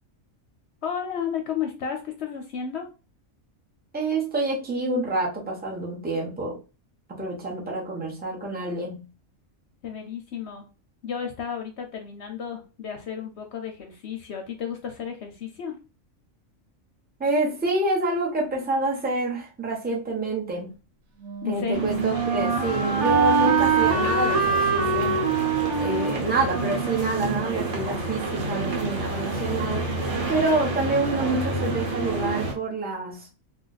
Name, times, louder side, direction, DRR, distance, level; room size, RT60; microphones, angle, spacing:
voice 1, 0.8-2.9 9.8-10.7 11.0-15.8 21.4-21.9, left 7 dB, 65° left, 0.8 m, -33 dB
voice 2, 3.9-6.6 7.1-9.1 17.2-20.7 21.5-25.2 25.8-29.9 30.3-33.3, right 2 dB, 10° right, 0.5 m, -27 dB
Wind instrument woodwind instrument, 21.2-28.1, right 5 dB, 85° right, 1.2 m, -25 dB
sound 1, 21.7-32.5, right 2 dB, 65° right, 1.1 m, -30 dB
2.4 x 2.3 x 3.9 m
omnidirectional pair, 1.4 m